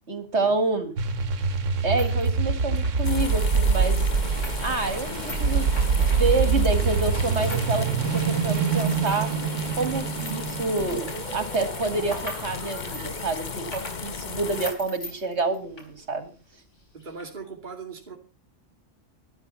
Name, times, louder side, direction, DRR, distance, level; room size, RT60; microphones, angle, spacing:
voice 1, 0.1-0.9 1.8-4.0 4.6-7.9 8.1-9.3 9.7-11.1 11.3-16.3, right 3 dB, 65° right, 9 dB, 2.6 m, -28 dB
sound 1, 1.0-13.4, right 5 dB, 80° right, 1.3 m, -25 dB
sound 2, 1.7-7.7 8.0-15.9 16.2-16.3 17.0-17.2, left 2 dB, 75° left, 4.1 m, -42 dB
sound 3, 3.0-14.7, left 5 dB, 40° left, 1.0 m, -35 dB
voice 2, 16.9-18.2, right 5 dB, 40° right, 0 dB, 2.7 m, -39 dB
12.5 x 12.5 x 5.6 m, 0.35 s
omnidirectional pair, 1.3 m